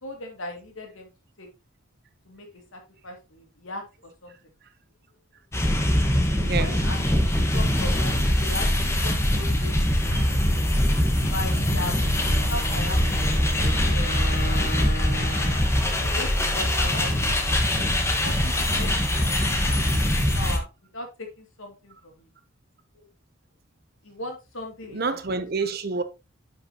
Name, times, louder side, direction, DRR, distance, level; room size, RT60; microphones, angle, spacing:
voice 1, 0.0-1.1 1.4-1.5 2.3-2.5 2.7-4.3 6.4-7.2 7.5-9.7 10.0-10.3 11.0-11.9 12.5-13.2 13.5-14.9 16.0-17.2 17.8-20.7 20.9-22.3 22.9-23.0 24.0-25.4, left 2 dB, 75° left, 2.4 m, -38 dB
sound 1, 5.5-20.6, left 1 dB, 15° left, 1.2 m, -23 dB
voice 2, 6.4-6.9 19.6-19.7 24.9-26.0, right 4 dB, 50° right, 0.8 m, -28 dB
Bowed string instrument, 11.0-15.8, equal, 50° left, 2.6 m, -37 dB
10.0 x 5.3 x 2.9 m
head